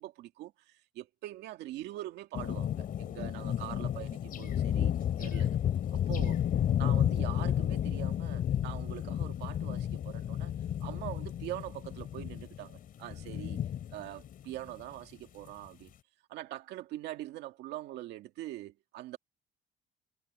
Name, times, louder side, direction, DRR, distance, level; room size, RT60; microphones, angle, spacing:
voice 1, 0.0-5.6 5.9-6.4 6.8-10.5 10.8-13.6 13.9-15.9 16.3-19.2, right 15 dB, 85° right, 2.1 m, -43 dB
sound 1, 2.3-14.9, left 10 dB, 55° left, 3.7 m, -32 dB
cardioid pair, 110°, 17 cm